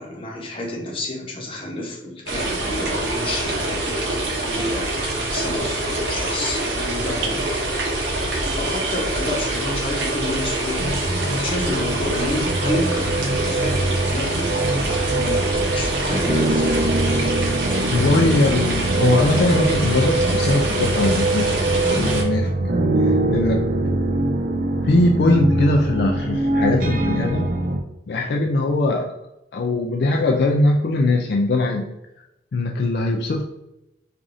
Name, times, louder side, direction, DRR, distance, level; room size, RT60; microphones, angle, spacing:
voice 1, 0.0-7.8 8.6-17.0, left 1 dB, 30° left, -2 dB, 0.9 m, -30 dB
sound 1, 2.3-22.2, right 2 dB, 85° right, 0.8 m, -25 dB
sound 2, 10.8-27.8, right 2 dB, 50° right, 0.4 m, -23 dB
voice 2, 17.9-21.5 21.9-22.5 23.0-23.6 24.8-27.5 28.1-29.1 29.5-31.9 32.5-33.4, left 2 dB, 65° left, 1 dB, 0.3 m, -20 dB
4.7 x 2.5 x 2.6 m, 0.88 s
head